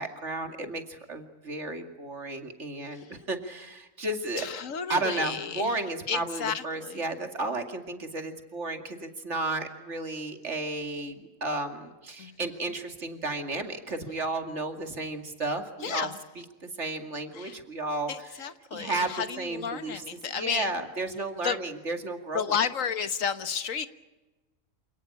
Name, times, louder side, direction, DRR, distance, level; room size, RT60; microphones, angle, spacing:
voice 1, 0.0-4.5 4.9-16.1 16.4-18.5 18.7-20.0 20.3-22.5, right 2 dB, 60° right, 6 dB, 2.7 m, -33 dB
voice 2, 4.4-5.8 6.1-7.0 12.2-12.4 15.8-16.2 17.3-17.6 18.1-20.7 21.4-21.6 22.3-23.9, left 7 dB, 80° left, 11 dB, 1.6 m, -32 dB
28.0 x 18.5 x 8.7 m, 1.1 s
omnidirectional pair, 1.3 m